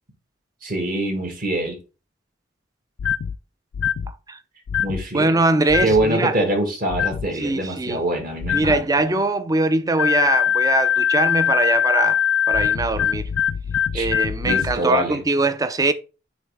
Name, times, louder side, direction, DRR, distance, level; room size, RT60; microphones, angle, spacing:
voice 1, 0.6-1.8 4.8-5.4 5.8-8.9 13.9-14.1 14.4-15.2, right 1 dB, 45° right, 1.6 m, -24 dB
sound 1, 3.0-3.3 3.7-4.1 4.7-5.0 5.7-6.1 6.9-7.3 8.4-8.8 10.0-14.8, left 9 dB, 80° left, 0.4 m, -22 dB
voice 2, 5.1-6.4 7.3-8.0 8.5-12.2 12.5-13.3 13.9-15.9, right 2 dB, 20° right, 0.4 m, -22 dB
8.9 x 3.1 x 3.4 m
head